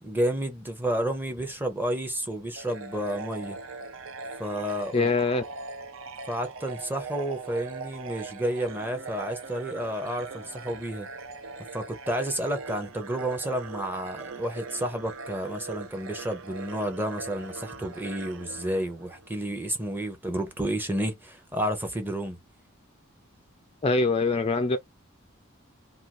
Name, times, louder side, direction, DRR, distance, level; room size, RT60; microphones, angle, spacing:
voice 1, 0.0-3.6 4.4-5.1 6.3-11.1 11.7-22.4, right 1 dB, 10° right, 0.6 m, -31 dB
sound 1, 2.6-19.3, right 4 dB, 70° right, 0.6 m, -40 dB
voice 2, 4.9-5.4 23.8-24.8, left 3 dB, 25° left, 0.3 m, -23 dB
2.5 x 2.3 x 3.0 m
head